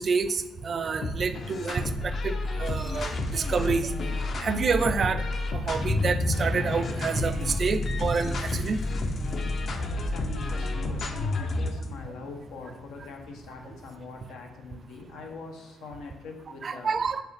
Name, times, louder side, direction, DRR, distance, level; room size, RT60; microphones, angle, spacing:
voice 1, 0.0-3.9 4.4-5.2 5.5-8.8 16.6-17.2, right 5 dB, 45° right, 11 dB, 0.4 m, -28 dB
sound 1, 1.0-11.8, left 2 dB, 50° left, 0.8 m, -31 dB
Thunder, 2.4-14.1, left 1 dB, 35° left, 1.9 m, -47 dB
sound 2, 5.7-14.6, left 2 dB, 20° left, 0.3 m, -36 dB
voice 2, 9.6-17.0, left 3 dB, 85° left, 2 dB, 1.1 m, -43 dB
6.1 x 4.5 x 3.5 m, 0.97 s
cardioid pair, 90°, 0 cm